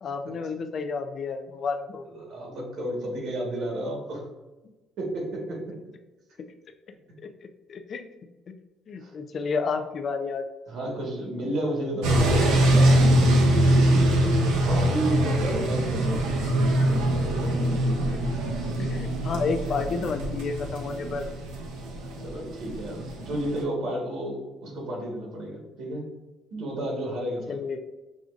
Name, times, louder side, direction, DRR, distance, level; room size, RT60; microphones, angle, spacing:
voice 1, 0.0-2.1 7.2-8.1 8.5-8.6 8.9-10.5 14.8-14.9 18.0-18.2 18.8-21.3 27.5-27.8, left 4 dB, 50° left, 8 dB, 0.4 m, -31 dB
voice 2, 2.1-4.3 5.0-5.9 9.0-9.1 10.7-13.3 13.9-14.0 14.7-16.3 16.9-17.5 18.3-18.5 22.2-26.1 26.5-27.5, right 1 dB, 70° right, 0 dB, 1.3 m, -32 dB
sound 1, 12.0-23.6, right 1 dB, 85° right, 0.7 m, -23 dB
6.1 x 2.5 x 2.4 m, 1.1 s
cardioid pair, 85°, 0 cm